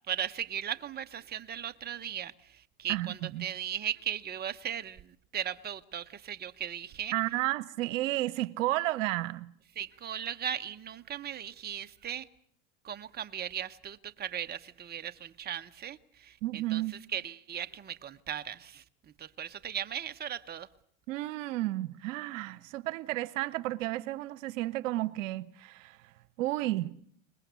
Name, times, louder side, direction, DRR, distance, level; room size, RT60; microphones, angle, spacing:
voice 1, 0.1-7.1 9.8-12.3 12.8-16.8 17.1-18.8 19.2-20.7, right 9 dB, 25° right, 0.9 m, -37 dB
voice 2, 2.9-3.5 7.1-9.5 16.4-16.9 21.1-26.0 26.4-26.9, right 17 dB, 75° right, 1.0 m, -32 dB
23.0 x 20.5 x 8.2 m
hypercardioid pair, 95°, 39 cm